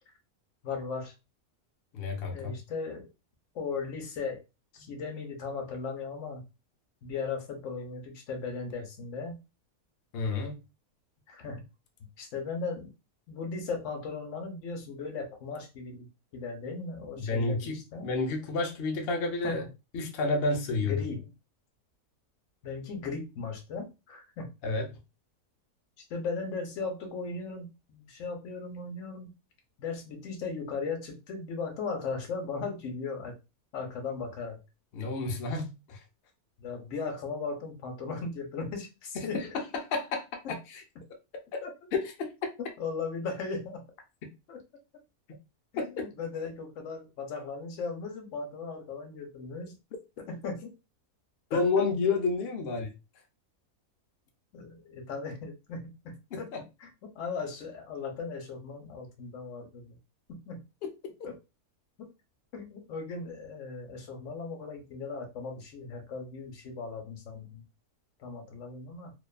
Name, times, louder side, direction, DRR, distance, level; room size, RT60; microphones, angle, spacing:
voice 1, 0.6-1.1 2.3-3.1 3.5-4.4 4.7-6.4 7.0-9.4 11.3-11.6 12.2-12.9 13.3-18.1 19.4-19.7 20.8-21.3 22.6-24.5 26.0-29.3 29.8-33.4 33.7-34.6 36.6-39.5 40.5-40.6 41.6-41.7 42.8-43.8 44.5-44.6 45.7-49.8 50.2-50.7 51.5-51.8 54.5-56.5 56.8-60.0 60.3-60.6 61.2-61.4 62.0-62.1 62.5-67.6 68.2-69.1, left 4 dB, 60° left, 0.9 m, -37 dB
voice 2, 1.9-2.5 4.8-4.9 10.1-10.6 17.2-19.6 19.9-21.0 24.6-25.0 34.9-36.0 39.3-40.3 40.7-40.8 41.9-42.3 46.0-46.1 51.5-52.9 56.3-56.6, left 3 dB, 80° left, 0.5 m, -30 dB
2.5 x 2.3 x 2.2 m
omnidirectional pair, 1.6 m